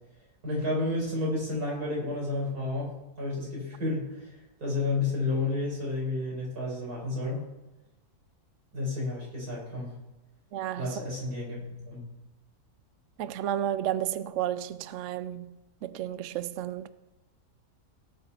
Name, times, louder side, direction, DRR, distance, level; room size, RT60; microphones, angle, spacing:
voice 1, 0.4-7.4 8.7-9.9 10.8-12.0, left 2 dB, 85° right, 5.3 m, -31 dB
voice 2, 10.5-11.0 13.2-16.9, right 11 dB, 70° right, 0.8 m, -32 dB
18.0 x 8.4 x 4.2 m
omnidirectional pair, 1.6 m